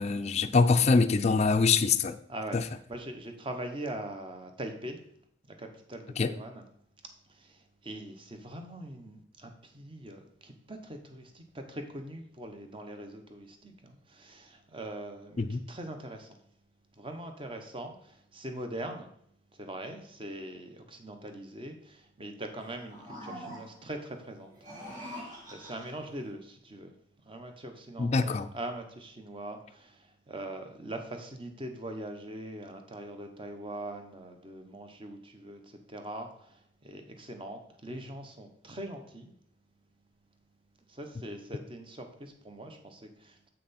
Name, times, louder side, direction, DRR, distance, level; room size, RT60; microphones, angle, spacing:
voice 1, 0.0-2.2 2.5-2.6 6.2-6.3 15.4-15.6 28.0-28.5, left 4 dB, 35° left, 0.4 m, -24 dB
voice 2, 2.9-5.0 5.5-6.6 7.3-16.4 17.0-19.1 19.5-24.5 24.9-26.9 27.2-39.3 40.9-43.5, right 1 dB, 30° right, 1.0 m, -42 dB
sound 1, 22.6-24.0 24.5-26.1, equal, 45° right, 2.3 m, -44 dB
7.8 x 5.9 x 4.2 m
head